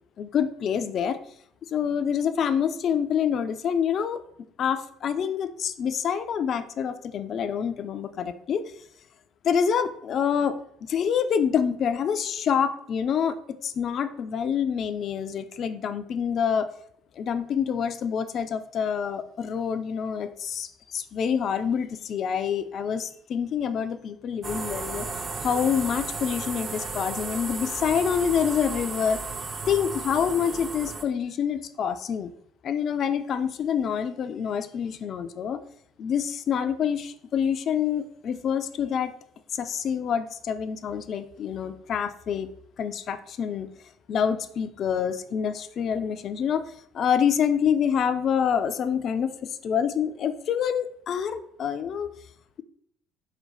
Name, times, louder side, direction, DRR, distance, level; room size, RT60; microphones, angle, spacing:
voice 1, 0.2-1.2 1.7-4.2 4.6-8.6 9.4-16.7 17.2-25.1 25.4-29.2 29.7-32.3 32.6-35.6 36.0-39.1 39.5-42.5 42.8-43.7 44.1-52.1, left 7 dB, 50° left, 10 dB, 0.3 m, -27 dB
sound 1, 24.4-31.0, right 4 dB, 30° right, 0.5 m, -34 dB
4.2 x 2.2 x 3.8 m, 0.67 s
figure-of-eight pair, 55°, 0 cm